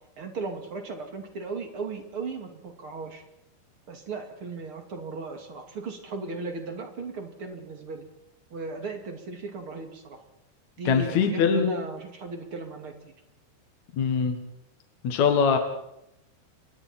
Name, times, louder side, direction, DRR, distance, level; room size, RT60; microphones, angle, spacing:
voice 1, 0.2-3.2 3.9-8.0 8.5-10.2 10.8-13.1, right 4 dB, 35° right, 4 dB, 2.8 m, -36 dB
voice 2, 10.9-11.7 14.0-14.4 15.0-15.6, left 6 dB, 55° left, 5 dB, 2.5 m, -22 dB
29.5 x 23.5 x 4.5 m, 0.84 s
omnidirectional pair, 4.8 m